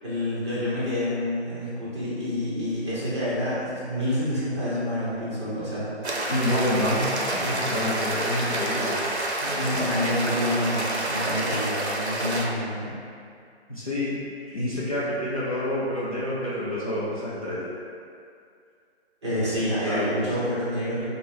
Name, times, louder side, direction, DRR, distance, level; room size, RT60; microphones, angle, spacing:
voice 1, 0.0-5.9 8.3-8.4 9.4-12.9 19.2-21.0, left 1 dB, 25° right, -10 dB, 1.0 m, -28 dB
sound 1, 6.0-12.4, right 1 dB, 75° right, 0.7 m, -28 dB
voice 2, 6.3-9.0 13.7-14.2 14.5-17.7 19.8-20.3, left 1 dB, 35° left, -9 dB, 0.5 m, -28 dB
4.9 x 2.2 x 3.2 m, 2.3 s
figure-of-eight pair, 150°, 33 cm